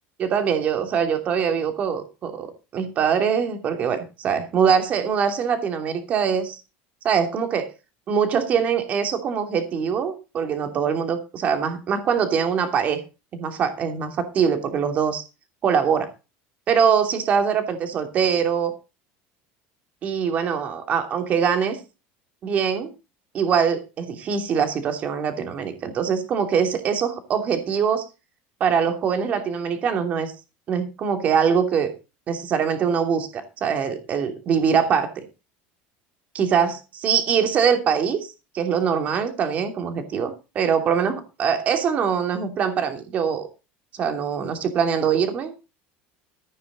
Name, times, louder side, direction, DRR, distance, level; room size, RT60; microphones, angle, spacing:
voice 1, 0.2-6.6 7.0-7.7 8.1-13.0 13.3-15.2 15.6-16.1 16.7-18.7 20.0-21.8 22.4-22.9 23.3-28.0 28.6-30.3 30.7-31.9 32.3-35.2 36.3-43.5 43.9-45.5, right 7 dB, 30° right, 6 dB, 2.8 m, -23 dB
14.5 x 9.6 x 4.0 m, 0.29 s
cardioid pair, 165°, 5 cm